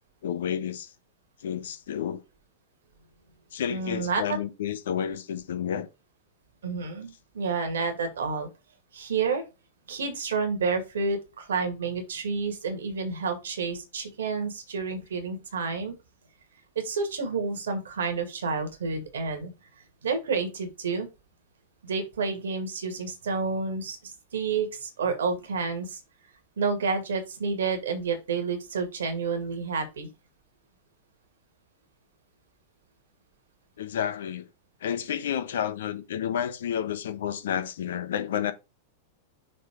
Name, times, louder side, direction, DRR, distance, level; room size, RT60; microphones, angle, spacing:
voice 1, 0.2-0.9 1.4-2.2 3.5-5.9 33.8-34.5 34.8-38.5, left 9 dB, 65° left, 0.9 m, -30 dB
voice 2, 3.7-4.2 6.6-8.5 8.9-9.4 9.9-15.9 16.8-19.5 20.0-21.1 21.8-26.0 26.6-30.1, right 4 dB, 70° right, 2.0 m, -29 dB
6.4 x 3.9 x 5.1 m
figure-of-eight pair, 95°, 0 cm